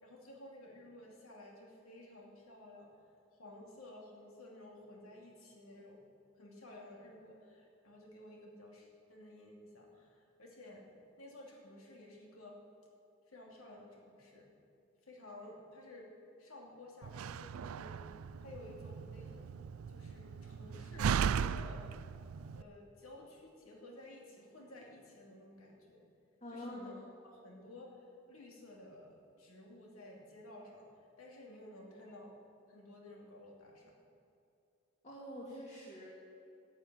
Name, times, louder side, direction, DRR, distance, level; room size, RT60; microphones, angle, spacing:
voice 1, 0.0-2.9 3.3-6.0 6.3-10.9 11.2-12.6 13.3-14.5 15.0-16.1 16.4-19.6 19.9-21.8 22.5-26.1 26.5-27.0 27.2-32.3 32.7-33.9, left 1 dB, 90° left, 0 dB, 2.7 m, -54 dB
Slam, 17.0-22.6, right 7 dB, 85° right, 0.4 m, -37 dB
voice 2, 26.4-27.0 35.0-36.1, left 1 dB, 35° left, -5 dB, 2.1 m, -46 dB
11.5 x 7.5 x 9.5 m, 2.6 s
head